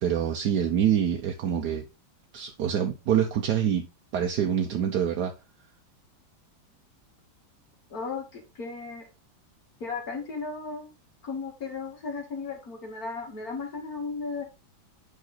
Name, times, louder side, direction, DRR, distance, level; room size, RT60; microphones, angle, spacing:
voice 1, 0.0-1.8 2.3-3.9 4.1-5.3, right 9 dB, 65° right, 1.2 m, -25 dB
voice 2, 7.9-9.0 9.8-10.9 11.2-14.4, left 4 dB, 50° left, 1.8 m, -35 dB
8.1 x 3.9 x 4.0 m
omnidirectional pair, 2.1 m